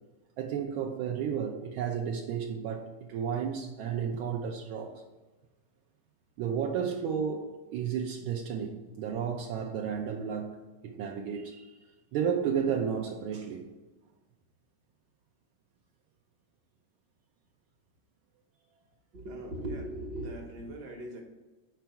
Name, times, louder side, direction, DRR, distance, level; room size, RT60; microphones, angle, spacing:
voice 1, 0.4-4.9 6.4-10.6 10.8-11.7 12.1-13.6, right 7 dB, 80° right, 1.5 m, -32 dB
voice 2, 19.1-21.2, right 1 dB, 55° right, 1.7 m, -39 dB
5.1 x 4.5 x 5.7 m
omnidirectional pair, 2.3 m